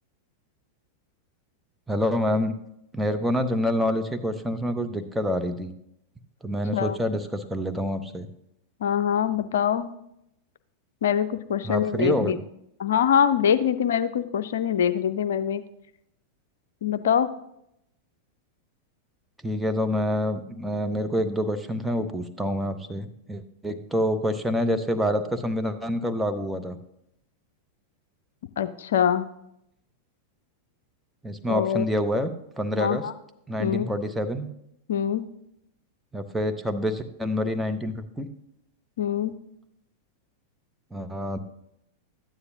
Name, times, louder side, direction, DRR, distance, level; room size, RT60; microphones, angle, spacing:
voice 1, 1.9-2.5 2.9-5.7 6.4-8.3 11.6-12.4 19.4-26.8 31.2-32.3 32.6-33.0 33.5-34.5 36.1-38.3 40.9-41.4, equal, 5° right, 5 dB, 0.9 m, -27 dB
voice 2, 8.8-9.9 11.0-12.4 12.8-15.6 16.8-17.3 28.6-29.3 31.5-31.9 32.8-33.1 33.6-33.9 34.9-35.2 39.0-39.3, left 8 dB, 60° left, 12 dB, 0.5 m, -24 dB
13.0 x 9.7 x 2.8 m, 0.78 s
figure-of-eight pair, 90°, 0 cm